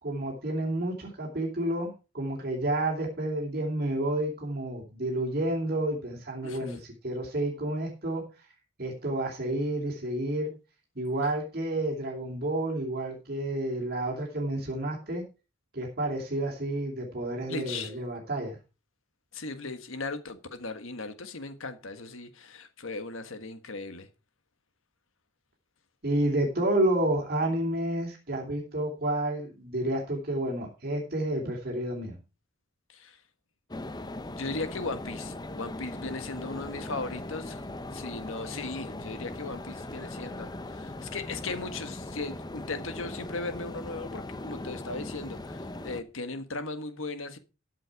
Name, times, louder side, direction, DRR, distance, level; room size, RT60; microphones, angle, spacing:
voice 1, 0.0-8.5 8.8-10.5 10.9-15.2 15.7-18.6 26.0-32.2, right 1 dB, 50° right, 2.9 m, -30 dB
voice 2, 6.4-6.8 17.5-17.9 19.3-24.1 32.9-33.2 34.4-37.6 37.9-47.4, left 3 dB, 80° left, 1.5 m, -37 dB
sound 1, 33.7-46.0, left 2 dB, 20° left, 0.6 m, -39 dB
13.5 x 7.6 x 4.7 m
head